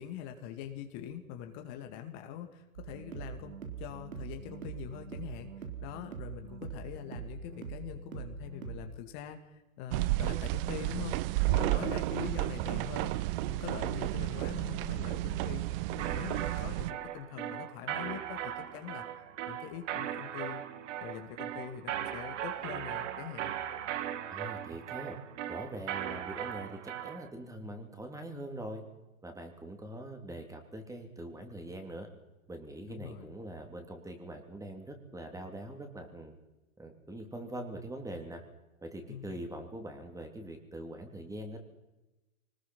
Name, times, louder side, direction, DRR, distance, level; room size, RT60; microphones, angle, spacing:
voice 1, 0.0-11.2 11.5-15.6 15.9-19.0 19.5-20.6 21.0-23.5 32.9-33.3 39.1-39.4, left 9 dB, 45° left, 6 dB, 2.5 m, -43 dB
sound 1, 2.7-8.8, right 6 dB, 80° right, 4.0 m, -43 dB
sound 2, 9.9-16.9, right 17 dB, 45° right, 0.8 m, -32 dB
voice 2, 11.6-12.0 24.3-25.2 25.5-28.8 29.2-32.1 32.5-36.3 36.8-38.4 38.8-41.6, right 1 dB, 10° right, 4 dB, 3.3 m, -43 dB
sound 3, 16.0-27.3, right 10 dB, 60° right, 2.4 m, -38 dB
25.0 x 20.0 x 5.6 m, 1.0 s
hypercardioid pair, 110°, 41 cm